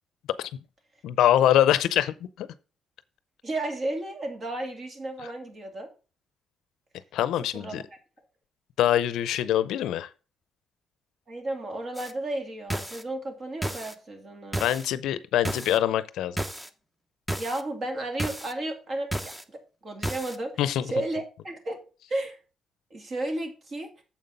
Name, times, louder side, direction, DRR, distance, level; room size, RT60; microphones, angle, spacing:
voice 1, 1.0-2.5 7.1-7.8 8.8-10.1 14.6-16.4 20.6-20.9, left 11 dB, 85° left, 0.5 m, -24 dB
voice 2, 3.4-5.9 7.5-7.8 11.3-14.7 17.4-20.5 20.8-21.8 22.1-22.4 22.9-23.9, right 1 dB, 45° right, 2.4 m, -33 dB
sound 1, 12.0-12.1 12.7-13.0 13.6-13.9 14.5-14.9 15.4-15.8 16.4-16.7 17.3-17.6 18.2-18.5 19.1-19.4 20.0-20.4, right 1 dB, 10° right, 0.8 m, -32 dB
7.3 x 5.2 x 5.5 m
cardioid pair, 90°, 0 cm